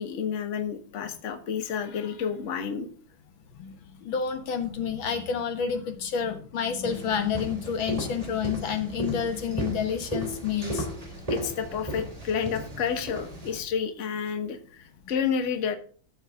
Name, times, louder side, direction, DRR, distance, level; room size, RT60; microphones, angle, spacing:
voice 1, 0.0-2.9 11.3-15.8, left 7 dB, 45° left, 8 dB, 1.3 m, -30 dB
voice 2, 4.0-10.9, left 7 dB, 85° left, 8 dB, 2.0 m, -29 dB
sound 1, 6.8-13.6, right 1 dB, 20° right, 3.0 m, -35 dB
13.5 x 6.4 x 3.6 m, 0.42 s
omnidirectional pair, 2.1 m